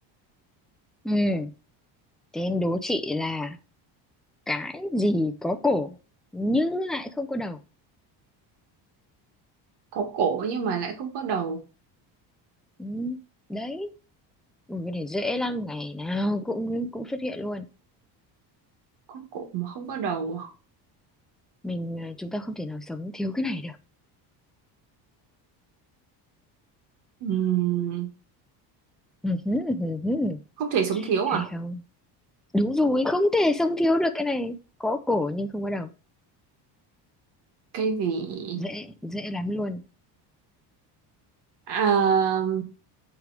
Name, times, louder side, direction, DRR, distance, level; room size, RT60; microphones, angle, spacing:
voice 1, 1.0-1.5 2.3-3.6 4.5-6.0 6.3-7.6 12.8-13.2 13.5-13.9 14.7-17.7 21.6-23.8 29.2-30.4 31.3-31.8 32.5-35.9 38.6-39.8, left 1 dB, ahead, 0.4 m, -27 dB
voice 2, 9.9-11.6 19.1-20.5 27.2-28.1 30.6-31.5 37.7-38.6 41.7-42.6, right 7 dB, 70° right, 1.8 m, -26 dB
7.9 x 3.5 x 4.8 m
cardioid pair, 145°, 42 cm